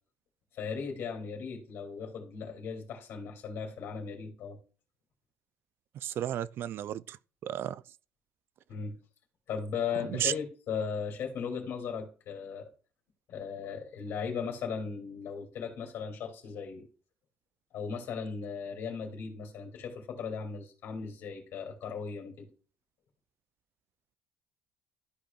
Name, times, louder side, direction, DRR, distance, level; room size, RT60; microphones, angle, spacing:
voice 1, 0.5-4.6 8.7-8.9 9.5-12.7 13.3-16.9 17.7-22.5, left 6 dB, 65° left, 2.7 m, -37 dB
voice 2, 6.0-7.2 7.4-7.8 10.2-10.3, right 11 dB, 60° right, 0.4 m, -33 dB
13.5 x 5.0 x 2.4 m
supercardioid pair, 90°, 4 cm